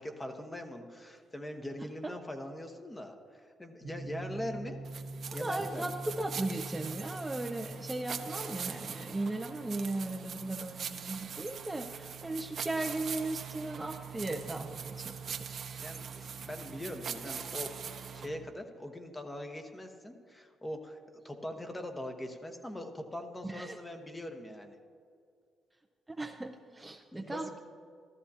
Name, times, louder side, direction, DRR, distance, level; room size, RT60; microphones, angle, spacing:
voice 1, 0.0-4.8 5.3-5.8 11.9-12.0 15.7-21.0 21.2-24.8 27.1-27.7, left 1 dB, 15° left, 5 dB, 1.1 m, -42 dB
sound 1, 3.8-18.5, right 3 dB, 85° right, 1.1 m, -46 dB
sound 2, 4.9-18.3, right 7 dB, 55° right, 0.8 m, -43 dB
voice 2, 5.3-15.5 23.4-23.8 26.1-27.5, right 2 dB, 15° right, 4 dB, 0.5 m, -37 dB
14.5 x 13.5 x 2.8 m, 2.2 s
cardioid pair, 90°, 0 cm